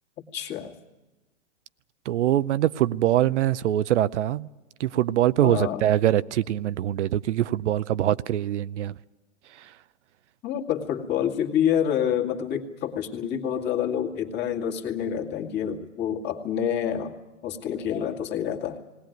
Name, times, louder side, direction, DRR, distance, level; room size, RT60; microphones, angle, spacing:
voice 1, 0.2-0.7 5.4-5.8 10.4-17.1 17.4-18.8, left 9 dB, 25° left, 2.2 m, -27 dB
voice 2, 2.1-4.5 4.8-9.0 9.6-9.7, right 12 dB, 65° right, 0.6 m, -23 dB
19.0 x 19.0 x 9.2 m
hypercardioid pair, 130°, 38 cm